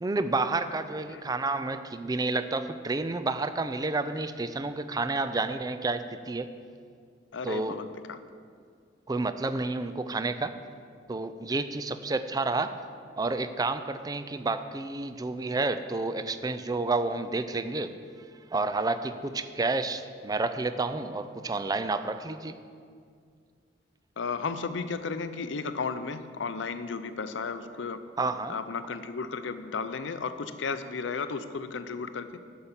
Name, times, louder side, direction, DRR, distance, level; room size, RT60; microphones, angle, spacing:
voice 1, 0.0-6.5 7.4-7.8 9.1-10.5 11.1-12.8 13.2-17.9 18.5-22.6 28.2-28.6, right 3 dB, 20° right, 10 dB, 0.4 m, -30 dB
voice 2, 1.1-1.6 7.3-8.2 24.2-28.0 28.5-32.4, left 5 dB, 75° left, 11 dB, 0.6 m, -34 dB
10.5 x 5.6 x 7.2 m, 2.2 s
head